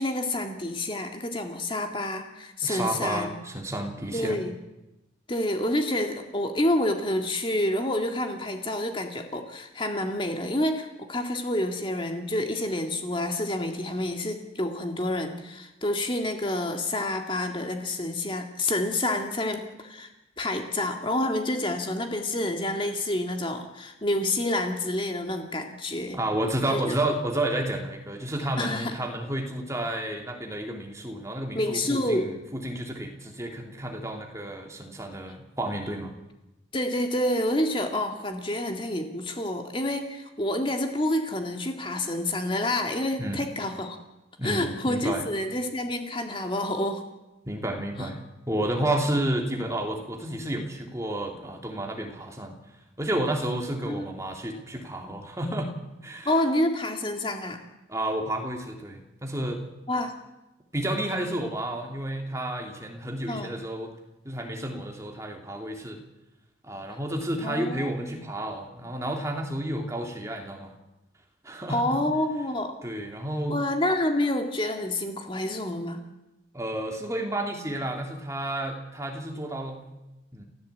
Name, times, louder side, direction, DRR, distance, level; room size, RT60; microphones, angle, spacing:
voice 1, 0.0-3.3 4.1-4.5 5.3-20.1 20.4-26.2 26.7-27.0 28.6-28.9 31.5-32.3 36.7-44.0 44.4-47.0 48.0-48.1 53.8-54.1 56.3-57.6 59.9-60.1 63.3-63.5 67.4-68.2 71.7-72.8 73.5-76.0, left 1 dB, 25° left, 4 dB, 2.0 m, -28 dB
voice 2, 2.6-4.4 26.1-36.1 43.2-43.4 44.4-45.2 47.4-48.2 48.5-52.6 53.0-55.7 56.0-56.3 57.9-59.6 60.7-63.9 64.2-66.0 66.6-70.7 71.4-72.0 72.8-73.6 76.5-79.9 80.3-80.4, right 1 dB, 15° right, 2 dB, 2.9 m, -31 dB
29.0 x 15.5 x 8.4 m, 1.0 s
head